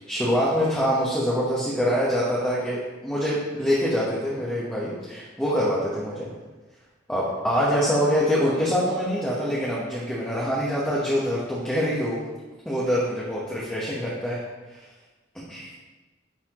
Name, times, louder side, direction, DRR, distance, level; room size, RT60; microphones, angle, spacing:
voice 1, 0.1-6.3 7.1-12.2 12.6-14.4 14.7-14.8 15.5-15.7, equal, 5° left, -8 dB, 1.0 m, -25 dB
10.5 x 4.1 x 3.0 m, 1.2 s
head